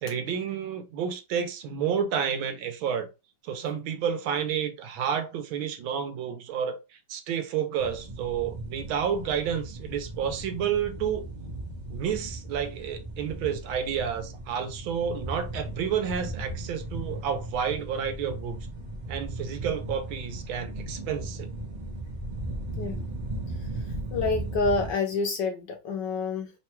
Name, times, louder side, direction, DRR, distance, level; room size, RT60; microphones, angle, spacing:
voice 1, 0.0-3.1 3.4-11.2 11.9-18.7 19.1-21.5, right 8 dB, 80° right, 1.5 m, -30 dB
sound 1, 7.8-24.9, right 1 dB, 45° right, 0.5 m, -37 dB
voice 2, 22.8-23.1 24.1-26.5, left 3 dB, 70° left, 1.1 m, -28 dB
3.6 x 2.2 x 4.3 m
omnidirectional pair, 2.3 m